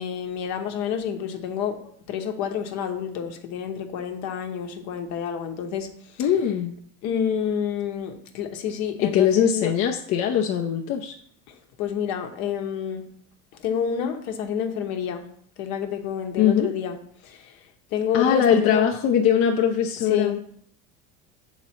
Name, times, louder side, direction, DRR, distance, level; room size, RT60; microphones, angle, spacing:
voice 1, 0.0-6.3 7.0-9.7 11.8-13.0 13.6-15.2 15.6-17.0 17.2-17.6 17.9-18.8 20.1-20.4, left 8 dB, 65° left, 5 dB, 1.0 m, -28 dB
voice 2, 6.2-6.7 9.0-11.1 16.4-16.7 18.1-20.4, left 8 dB, 50° left, 3 dB, 0.6 m, -21 dB
6.2 x 4.0 x 4.3 m, 0.63 s
supercardioid pair, 105°, 29 cm